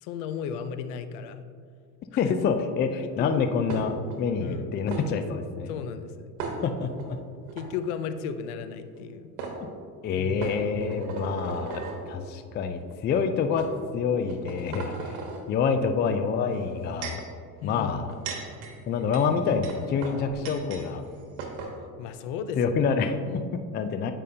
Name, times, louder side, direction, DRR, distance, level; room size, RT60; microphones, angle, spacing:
voice 1, 0.0-1.4 2.1-2.3 3.0-3.5 4.4-4.8 5.7-6.3 7.5-9.3 10.2-11.4 17.6-18.1 22.0-22.7 23.1-23.5, left 7 dB, 70° left, 10 dB, 0.6 m, -35 dB
voice 2, 2.2-5.7 6.6-7.2 10.0-13.7 13.9-14.9 15.5-17.2 17.6-18.1 18.9-21.0 22.6-24.1, left 5 dB, 25° left, 8 dB, 0.3 m, -27 dB
sound 1, 3.7-4.2 4.9-5.0 6.4-7.1 7.5-7.7 8.9-9.0 9.4-9.6 10.4-12.0 12.8-12.9 13.6-13.7 14.2-15.4 16.5-17.3 17.9-20.9 21.1-21.2 21.4-21.7, right 4 dB, 70° right, 1.3 m, -36 dB
8.4 x 5.4 x 2.7 m, 2.1 s
supercardioid pair, 85°, 46 cm